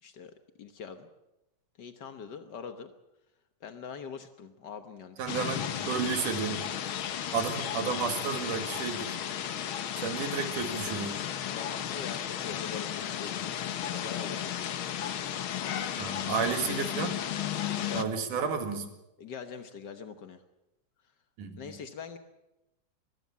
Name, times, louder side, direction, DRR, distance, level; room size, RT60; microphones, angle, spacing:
voice 1, 0.0-1.1 1.8-2.9 3.6-5.5 11.4-15.0 17.8-18.1 19.2-20.4 21.6-22.2, left 6 dB, 85° left, 8 dB, 0.9 m, -43 dB
voice 2, 5.2-6.7 7.3-9.2 10.0-11.2 16.0-17.2 17.9-18.9 21.4-21.7, right 6 dB, 75° right, 7 dB, 3.5 m, -32 dB
sound 1, 5.3-18.0, left 10 dB, 65° left, 1.3 m, -34 dB
23.5 x 15.0 x 8.5 m, 0.95 s
omnidirectional pair, 3.7 m